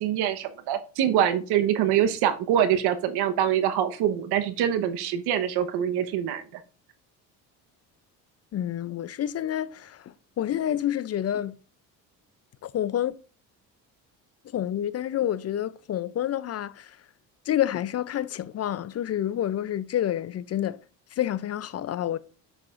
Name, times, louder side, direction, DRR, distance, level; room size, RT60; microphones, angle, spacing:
voice 1, 0.0-6.6, right 10 dB, 75° right, 1.1 m, -24 dB
voice 2, 8.5-11.5 12.6-13.1 14.5-17.0 17.5-20.8 21.1-22.2, left 11 dB, 40° left, 0.5 m, -28 dB
9.5 x 6.7 x 2.5 m
supercardioid pair, 85°, 39 cm